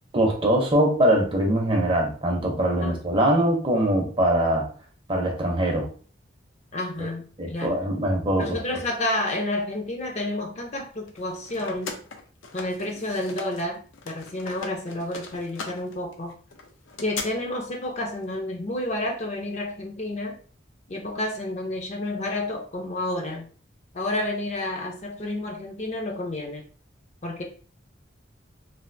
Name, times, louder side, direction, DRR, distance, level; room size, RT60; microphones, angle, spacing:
voice 1, 0.1-4.7 5.1-5.9 7.0-7.1 7.4-8.6, right 1 dB, 25° right, 1 dB, 0.6 m, -22 dB
voice 2, 6.7-7.7 8.4-12.0 12.5-13.8 14.1-16.3 17.0-20.4 20.9-23.5 23.9-26.7 27.2-27.4, left 1 dB, 35° left, 2 dB, 0.5 m, -30 dB
sound 1, 11.1-13.7 13.9-17.3, left 4 dB, 80° left, 0.5 m, -38 dB
3.3 x 2.5 x 2.5 m, 0.41 s
head